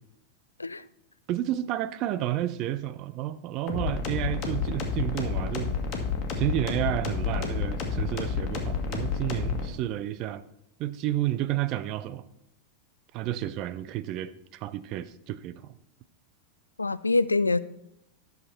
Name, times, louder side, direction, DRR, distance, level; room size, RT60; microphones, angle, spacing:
voice 1, 1.3-5.8 6.4-10.4 10.8-12.3 13.1-15.7, right 13 dB, 40° right, 0.5 m, -31 dB
sound 1, 3.7-9.7, left 5 dB, 35° left, 1.7 m, -30 dB
voice 2, 16.8-17.6, left 3 dB, 80° left, 0.3 m, -24 dB
11.0 x 6.8 x 4.2 m
figure-of-eight pair, 90°, 0 cm